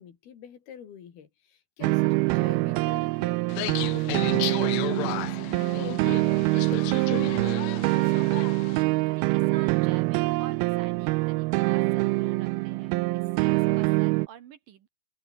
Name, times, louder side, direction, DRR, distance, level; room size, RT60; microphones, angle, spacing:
voice 1, 0.0-3.4 3.7-8.4, left 8 dB, 70° left, 4.7 m, -46 dB
sound 1, 1.8-14.3, right 23 dB, 85° right, 2.2 m, -25 dB
sound 2, 3.5-8.8, left 17 dB, 85° left, 3.1 m, -34 dB
voice 2, 9.1-14.9, right 9 dB, 65° right, 2.9 m, -47 dB
omnidirectional pair, 4.8 m